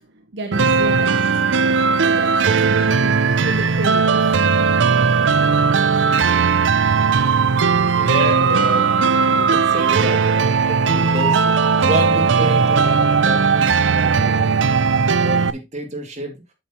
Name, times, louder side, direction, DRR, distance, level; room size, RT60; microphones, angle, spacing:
voice 1, 0.0-1.6 2.0-4.4, right 1 dB, 65° right, 0.9 m, -32 dB
sound 1, 0.5-15.5, right 5 dB, 85° right, 0.5 m, -17 dB
voice 2, 8.0-13.5 13.9-14.8 15.2-16.4, right 1 dB, 40° right, 2.5 m, -29 dB
8.7 x 6.9 x 2.9 m
head